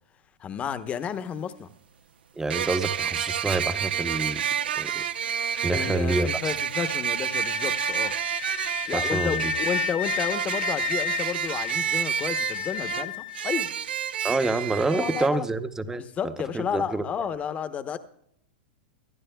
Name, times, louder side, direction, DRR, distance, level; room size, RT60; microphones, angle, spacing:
voice 1, 0.4-1.7 5.6-8.1 8.9-13.1 13.4-13.7 14.9-15.4 15.9-18.0, left 8 dB, 25° left, 11 dB, 0.9 m, -31 dB
sound 1, 0.9-1.0 2.5-15.3, right 8 dB, 85° right, 0.6 m, -29 dB
voice 2, 2.4-4.4 4.8-5.0 5.6-6.6 8.9-9.5 14.2-16.1 16.5-17.3, right 3 dB, 10° right, 11 dB, 0.8 m, -27 dB
Wind instrument woodwind instrument, 7.3-13.7, left 14 dB, 85° left, 2.8 m, -33 dB
24.5 x 12.0 x 2.3 m, 0.74 s
hypercardioid pair, 125°, 5 cm